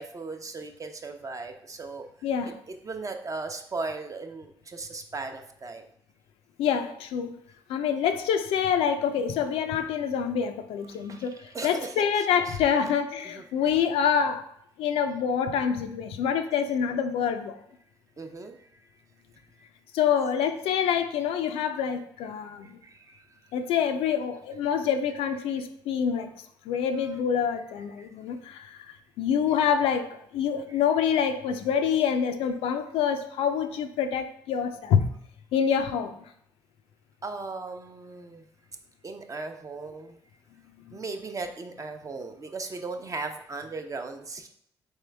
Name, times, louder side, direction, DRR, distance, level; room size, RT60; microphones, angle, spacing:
voice 1, 0.0-2.1 2.8-5.8 11.0-12.8 13.3-13.4 18.2-18.9 19.6-19.7 22.6-23.3 28.0-28.1 37.2-38.4 39.0-40.2 40.9-44.5, right 3 dB, 35° right, 5 dB, 0.6 m, -37 dB
voice 2, 2.2-2.6 6.6-7.3 7.7-14.5 14.8-17.6 19.9-22.8 23.5-26.3 26.7-28.9 29.2-35.1 35.5-36.2 40.9-41.0, left 7 dB, 80° left, 8 dB, 0.4 m, -26 dB
3.6 x 3.4 x 3.3 m, 0.70 s
supercardioid pair, 55°, 10 cm